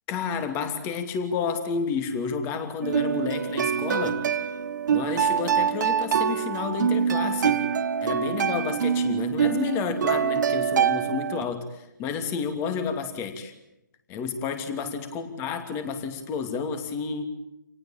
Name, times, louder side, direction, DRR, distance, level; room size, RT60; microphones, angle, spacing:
voice 1, 0.1-4.2 4.9-7.6 8.0-13.5 14.1-17.2, left 6 dB, 20° left, 8 dB, 2.8 m, -30 dB
sound 1, 2.8-11.4, right 7 dB, 60° right, 1.6 m, -25 dB
27.5 x 18.5 x 8.9 m, 0.91 s
hypercardioid pair, 150°, 11 cm